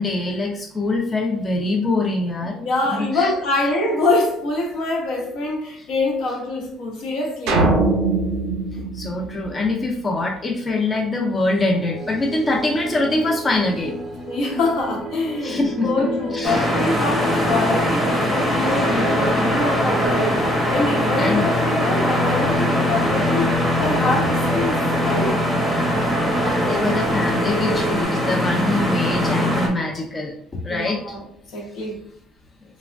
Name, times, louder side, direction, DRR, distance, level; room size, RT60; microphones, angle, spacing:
voice 1, 0.0-2.6 2.9-3.3 8.9-14.0 15.4-16.7 21.2-21.4 26.4-30.3 30.6-31.2, left 2 dB, 25° left, 0.5 m, -23 dB
voice 2, 2.4-7.6 8.7-8.9 14.3-20.4 20.7-25.5 30.7-32.0, left 2 dB, 70° left, 0.8 m, -25 dB
sound 1, 7.5-9.9, right 2 dB, 85° right, 0.6 m, -21 dB
sound 2, 11.8-28.0, right 1 dB, 35° right, 0.5 m, -30 dB
sound 3, 16.4-29.7, left 1 dB, 5° left, 0.8 m, -21 dB
3.2 x 2.0 x 2.4 m
cardioid pair, 110°, 0 cm